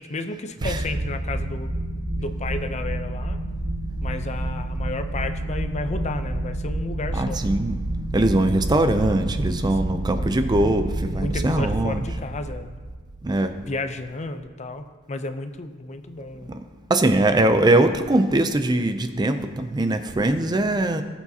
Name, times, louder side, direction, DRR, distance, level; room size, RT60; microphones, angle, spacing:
voice 1, 0.0-1.7 2.2-3.4 4.0-7.4 9.8-10.0 11.1-12.7 13.7-16.5, left 2 dB, 35° left, 8 dB, 0.6 m, -32 dB
sound 1, 0.6-13.9, right 1 dB, 55° right, 0.9 m, -29 dB
voice 2, 7.1-7.8 8.1-12.0 13.2-13.5 16.5-16.6 16.9-21.0, right 1 dB, 20° right, 9 dB, 0.4 m, -21 dB
18.0 x 7.2 x 2.8 m, 1.5 s
head